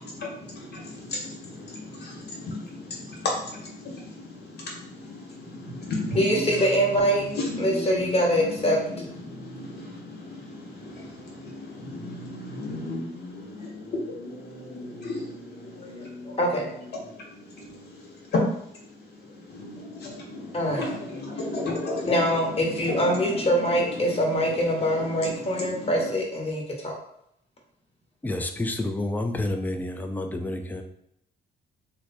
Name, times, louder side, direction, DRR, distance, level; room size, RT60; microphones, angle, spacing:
voice 1, 0.0-16.4 16.9-26.1, left 2 dB, 55° left, -1 dB, 1.2 m, -34 dB
voice 2, 6.2-7.2 7.6-8.8 13.6-13.7 15.7-16.7 19.2-19.4 20.5-20.8 22.1-26.9, equal, 30° left, -1 dB, 1.1 m, -24 dB
voice 3, 28.2-30.8, left 2 dB, 10° left, 5 dB, 0.4 m, -29 dB
3.1 x 2.2 x 4.0 m, 0.74 s
cardioid pair, 90°, 20 cm